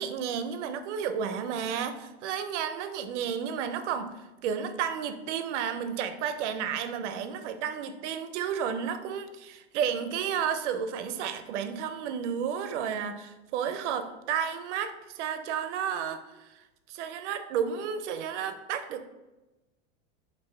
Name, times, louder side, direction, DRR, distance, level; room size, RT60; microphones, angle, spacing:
voice 1, 0.0-16.6 16.9-19.1, right 8 dB, 75° right, 9 dB, 0.6 m, -32 dB
5.4 x 2.7 x 3.1 m, 1.1 s
supercardioid pair, 150°, 36 cm